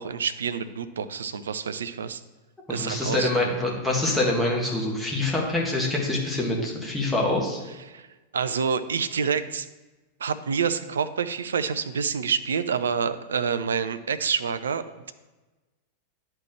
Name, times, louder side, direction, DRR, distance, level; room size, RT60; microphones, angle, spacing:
voice 1, 0.0-2.2 2.7-3.5 7.9-8.1 8.3-9.7 10.2-15.1, right 6 dB, 70° right, 12 dB, 0.4 m, -28 dB
voice 2, 2.7-7.6, left 2 dB, 5° left, -2 dB, 1.6 m, -25 dB
11.0 x 4.4 x 3.1 m, 1.2 s
figure-of-eight pair, 90°, 0 cm